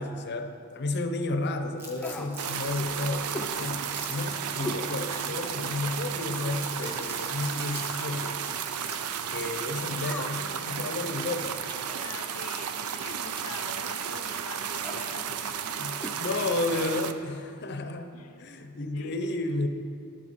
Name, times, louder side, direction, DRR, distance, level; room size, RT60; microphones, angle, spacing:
voice 1, 0.0-8.4 9.3-11.6 15.8-18.1 18.4-19.7, left 2 dB, 50° left, 7 dB, 0.7 m, -32 dB
Crumpling crinkling, 1.8-9.2, equal, 10° right, 1.2 m, -45 dB
sound 1, 2.0-2.4 3.3-3.6 4.6-4.9 5.4-5.5 6.7-7.1 8.0-8.3 10.0-10.5 11.7-12.1 13.4-13.6 14.8-15.0 16.0-16.2 16.5-16.6, left 1 dB, 5° left, 0.6 m, -38 dB
sound 2, 2.4-17.1, right 7 dB, 75° right, 0.5 m, -33 dB
voice 2, 12.0-16.9 18.1-18.5 18.9-19.3, left 5 dB, 90° left, 7 dB, 0.7 m, -45 dB
12.0 x 7.4 x 4.2 m, 2.5 s
head